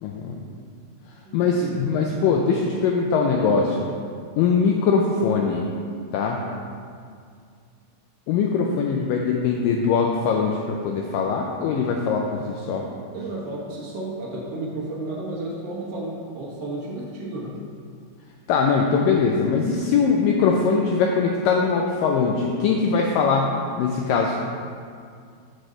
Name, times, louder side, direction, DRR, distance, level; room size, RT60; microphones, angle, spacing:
voice 1, 0.0-0.4 1.3-3.9 4.4-5.7 6.1-6.4 8.3-12.8 18.5-24.4, left 5 dB, 85° left, 1 dB, 1.9 m, -21 dB
voice 2, 1.2-1.8 2.3-2.4 13.1-17.6, right 2 dB, 70° right, -5 dB, 1.4 m, -32 dB
6.2 x 4.9 x 6.6 m, 2.2 s
omnidirectional pair, 4.5 m